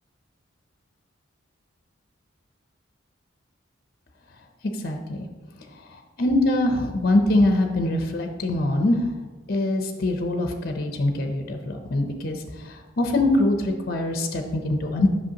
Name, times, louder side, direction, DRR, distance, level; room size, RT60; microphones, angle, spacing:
voice 1, 4.8-5.2 6.2-9.0 9.5-12.4 13.0-15.1, left 1 dB, 50° left, 4 dB, 0.6 m, -23 dB
7.9 x 5.6 x 2.9 m, 1.3 s
head